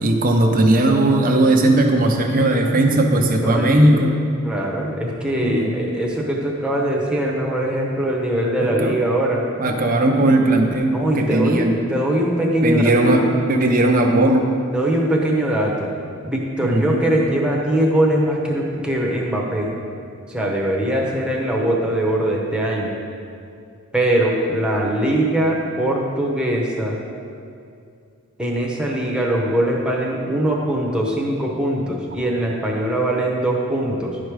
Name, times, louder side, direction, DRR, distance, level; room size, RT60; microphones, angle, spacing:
voice 1, 0.0-4.1 5.4-5.7 8.8-9.0 9.6-11.8 12.6-14.5 16.6-17.1, right 1 dB, 40° right, 2 dB, 0.7 m, -17 dB
voice 2, 3.4-4.1 4.4-9.5 10.9-13.3 14.7-15.9 16.2-19.7 20.3-22.9 23.9-27.0 28.4-34.2, right 1 dB, 5° right, -2 dB, 1.0 m, -21 dB
10.5 x 5.1 x 4.8 m, 2.4 s
head